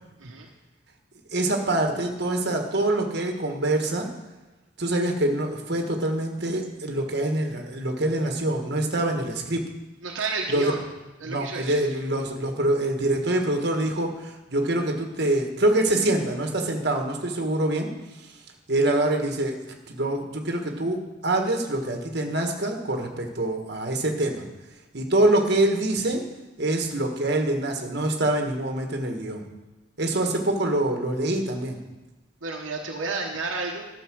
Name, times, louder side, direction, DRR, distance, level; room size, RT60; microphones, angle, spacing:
voice 1, 1.3-4.1 4.8-9.6 10.5-10.7 11.2-17.9 18.7-19.6 19.9-24.4 24.9-26.2 26.6-29.4 30.0-31.8, right 1 dB, 55° right, 3 dB, 1.5 m, -25 dB
voice 2, 10.0-10.8 11.2-11.9 13.8-13.9 32.4-33.9, right 3 dB, 75° right, 0 dB, 1.2 m, -31 dB
12.0 x 7.0 x 6.2 m, 1.1 s
head